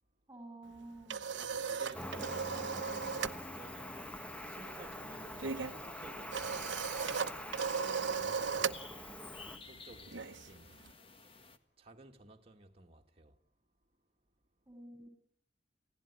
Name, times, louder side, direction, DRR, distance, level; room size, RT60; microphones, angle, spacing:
voice 1, 0.3-1.2 2.9-3.0 14.7-15.1, right 2 dB, 15° right, 7.5 m, -51 dB
rotary phone dial, 0.7-3.4 3.7-10.9, right 6 dB, 80° right, 0.9 m, -38 dB
sound 1, 1.2-11.6, left 4 dB, 30° left, 1.6 m, -57 dB
voice 2, 1.3-4.0 4.5-7.2 7.7-8.8 9.4-10.8 11.8-13.4, right 2 dB, 35° right, 2.1 m, -56 dB
Cricket, 1.9-9.6, left 1 dB, 5° left, 1.2 m, -45 dB
28.0 x 17.0 x 9.9 m
head